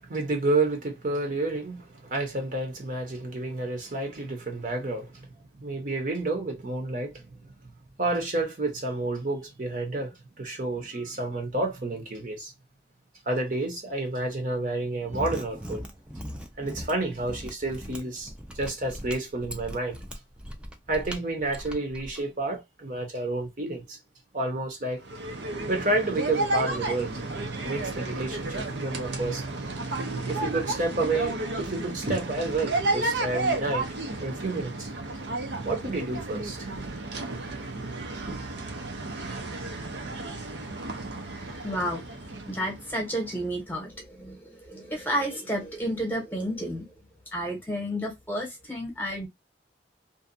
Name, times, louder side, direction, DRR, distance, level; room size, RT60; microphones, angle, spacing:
voice 1, 0.1-5.2 5.6-7.3 8.0-12.5 13.3-15.8 16.6-18.3 18.5-20.0 20.9-24.0 24.3-25.0 25.7-27.1 27.6-29.4 30.3-33.9 34.2-34.9 35.6-36.7 38.3-38.4, right 2 dB, 45° right, 0.8 m, -30 dB
Mechanisms, 15.0-22.2, equal, 5° right, 0.4 m, -40 dB
sound 1, 25.0-43.5, right 2 dB, 80° right, 0.7 m, -32 dB
voice 2, 41.6-46.9 47.3-49.3, equal, 10° left, 0.9 m, -31 dB
2.6 x 2.2 x 2.6 m
head